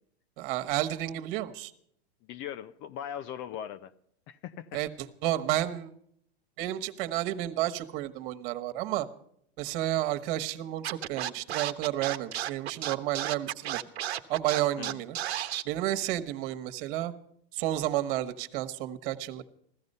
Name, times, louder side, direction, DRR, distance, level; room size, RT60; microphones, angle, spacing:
voice 1, 0.4-1.7 4.7-5.9 6.6-9.1 9.6-13.8 14.3-15.2 15.6-17.1 17.5-19.4, right 14 dB, 55° right, 1.5 m, -31 dB
voice 2, 2.3-3.9 4.3-4.7 14.8-15.0, left 10 dB, 40° left, 0.7 m, -39 dB
Scratching (performance technique), 10.8-15.6, right 12 dB, 85° right, 1.1 m, -33 dB
16.0 x 13.0 x 5.5 m
hypercardioid pair, 125°, 31 cm